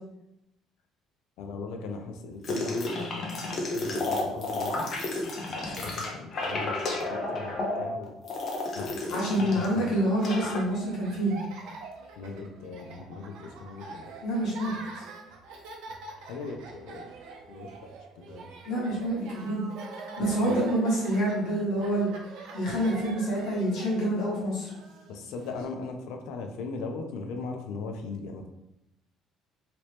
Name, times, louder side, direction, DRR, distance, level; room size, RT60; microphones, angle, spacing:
voice 1, 1.4-4.9 5.5-8.2 8.7-10.0 12.2-14.1 16.2-17.1 17.5-18.5 20.5-20.6 25.1-28.5, left 4 dB, 80° left, 4 dB, 0.5 m, -39 dB
sound 1, 2.4-9.7 10.0-10.6, left 2 dB, 35° left, 0.6 m, -32 dB
Laughter, 8.9-25.6, right 3 dB, 80° right, 0.6 m, -45 dB
voice 2, 9.1-11.3 14.2-14.8 18.6-19.6 20.0-22.1 22.5-24.7, right 1 dB, 60° left, -5 dB, 1.3 m, -27 dB
2.9 x 2.9 x 3.2 m, 0.86 s
cardioid pair, 165°, 0 cm